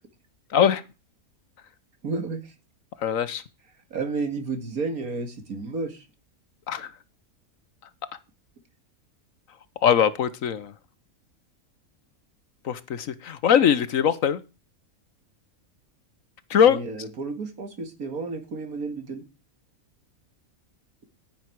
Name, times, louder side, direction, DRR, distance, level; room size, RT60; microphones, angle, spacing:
voice 1, 2.0-2.5 3.9-6.1 16.6-19.2, right 3 dB, 80° right, 7 dB, 2.7 m, -31 dB
voice 2, 3.0-3.4 6.7-6.9 9.8-10.7 12.6-14.4 16.5-16.8, left 8 dB, 65° left, 15 dB, 1.3 m, -21 dB
10.5 x 10.5 x 4.7 m, 0.30 s
omnidirectional pair, 1.5 m